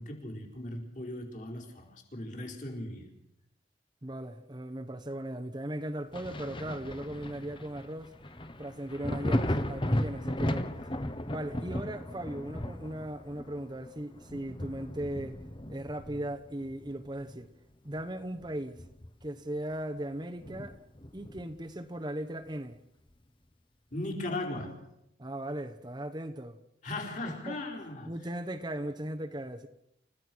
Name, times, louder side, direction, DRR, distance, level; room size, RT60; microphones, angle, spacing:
voice 1, 0.0-3.1 23.9-24.9 26.8-28.1, left 1 dB, 45° left, 4.8 m, -38 dB
voice 2, 4.0-8.1 8.6-10.7 11.2-15.4 15.7-17.5 17.8-18.8 19.2-20.8 21.1-22.8 25.2-26.6 27.5-27.6 28.0-29.7, right 1 dB, 25° right, 1.1 m, -38 dB
Thunder, 6.1-17.5 17.9-19.4 19.7-19.8 20.4-21.7 23.1-23.2, left 1 dB, 30° left, 1.3 m, -36 dB
30.0 x 15.5 x 6.3 m
head